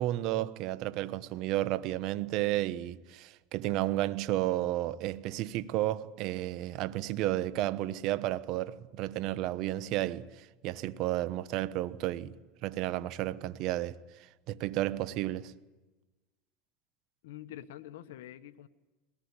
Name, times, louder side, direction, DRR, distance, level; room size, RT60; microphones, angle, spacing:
voice 1, 0.0-12.4 12.6-14.0 14.5-15.5, right 15 dB, 55° right, 1.1 m, -32 dB
voice 2, 17.2-18.7, left 12 dB, 80° left, 1.2 m, -46 dB
22.0 x 18.0 x 9.9 m
supercardioid pair, 120°, 0 cm